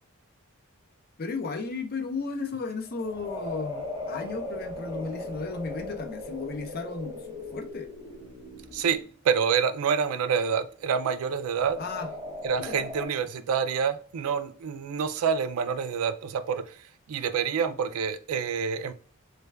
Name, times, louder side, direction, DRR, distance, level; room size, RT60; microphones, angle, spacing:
voice 1, 1.2-7.9 11.8-12.1 12.6-12.8, left 4 dB, 45° left, 0.5 m, -34 dB
sound 1, 2.9-9.1 11.4-13.1, left 2 dB, 15° right, 0.7 m, -38 dB
voice 2, 8.7-11.8 12.4-16.7 17.1-18.9, right 6 dB, 80° right, 0.3 m, -27 dB
3.2 x 2.2 x 3.2 m
head